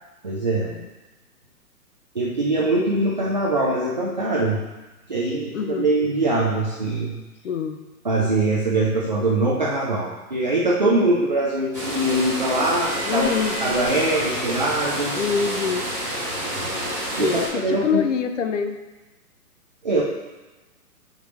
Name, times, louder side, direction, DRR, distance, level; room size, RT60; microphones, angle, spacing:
voice 1, 0.2-0.7 2.1-4.6 5.1-7.1 8.0-13.3 13.6-15.2 17.2-18.0 19.8-20.0, right 2 dB, 30° right, -4 dB, 0.4 m, -22 dB
voice 2, 5.5-5.9 7.4-7.8 13.0-13.6 15.1-15.9 17.2-18.8, left 6 dB, 55° left, 7 dB, 0.6 m, -25 dB
sound 1, 11.7-17.5, right 1 dB, 5° left, 0.8 m, -28 dB
6.4 x 5.1 x 3.1 m, 1.2 s
hypercardioid pair, 165°, 46 cm